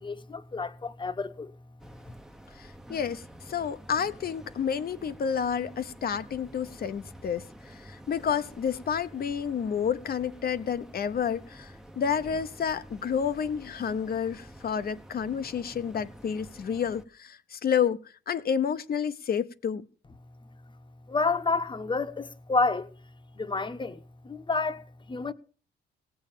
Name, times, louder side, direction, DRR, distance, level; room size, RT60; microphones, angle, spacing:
voice 1, 0.0-1.5 21.1-22.9 23.3-25.3, left 3 dB, 25° left, 1.0 m, -30 dB
sound 1, 1.8-17.0, equal, 5° right, 0.8 m, -49 dB
voice 2, 2.6-18.0 18.3-19.8, left 7 dB, 50° left, 0.8 m, -30 dB
17.0 x 7.1 x 7.3 m
cardioid pair, 90°, 20 cm